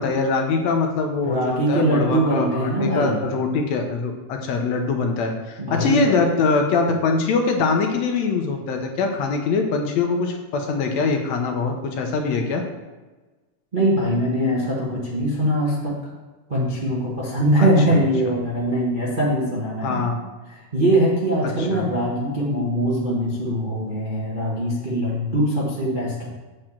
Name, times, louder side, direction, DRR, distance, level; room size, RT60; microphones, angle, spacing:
voice 1, 0.0-12.6 17.6-17.7 19.8-20.2 21.7-21.8, left 4 dB, 70° left, 3 dB, 1.9 m, -23 dB
voice 2, 1.2-3.2 5.6-6.2 13.7-16.1 16.5-20.0 20.5-26.3, right 1 dB, 60° right, -5 dB, 0.5 m, -22 dB
7.6 x 4.8 x 7.2 m, 1.2 s
omnidirectional pair, 3.6 m